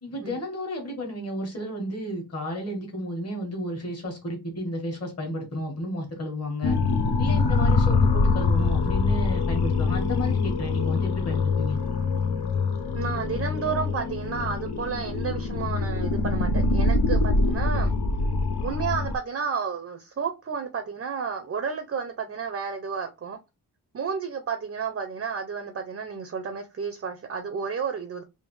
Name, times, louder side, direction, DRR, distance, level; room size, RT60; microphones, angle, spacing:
voice 1, 0.0-6.8 7.2-11.8, equal, 40° left, 1.5 m, -32 dB
sound 1, 6.6-19.2, left 3 dB, 75° left, 0.6 m, -24 dB
voice 2, 12.9-17.9 18.6-23.4 23.9-28.2, right 6 dB, 35° right, 0.5 m, -31 dB
3.5 x 2.7 x 3.1 m
wide cardioid pair, 165°, 39 cm